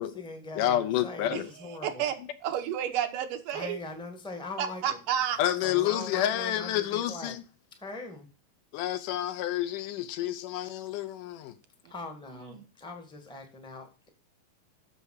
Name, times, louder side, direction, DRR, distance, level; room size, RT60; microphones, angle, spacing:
voice 1, 0.0-2.0 3.5-5.0 5.6-7.4 7.8-8.3 11.9-14.1, left 3 dB, 5° left, 0.8 m, -41 dB
voice 2, 0.6-1.5 5.4-7.4 8.7-11.5, left 12 dB, 75° left, 2.3 m, -29 dB
voice 3, 1.3-2.2 2.4-3.8 4.6-5.4 11.8-11.9 12.3-12.6, right 9 dB, 80° right, 2.7 m, -31 dB
6.9 x 6.8 x 6.5 m
omnidirectional pair, 3.8 m